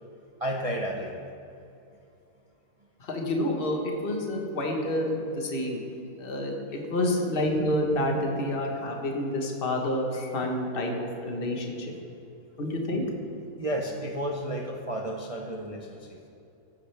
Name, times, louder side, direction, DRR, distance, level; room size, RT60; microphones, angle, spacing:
voice 1, 0.4-1.2 12.9-13.1 13.6-16.2, right 1 dB, 35° right, 0 dB, 0.6 m, -32 dB
voice 2, 3.0-5.8 6.2-11.9 12.6-13.0, left 1 dB, 35° left, 1 dB, 1.4 m, -28 dB
15.0 x 9.9 x 3.4 m, 2.7 s
omnidirectional pair, 1.7 m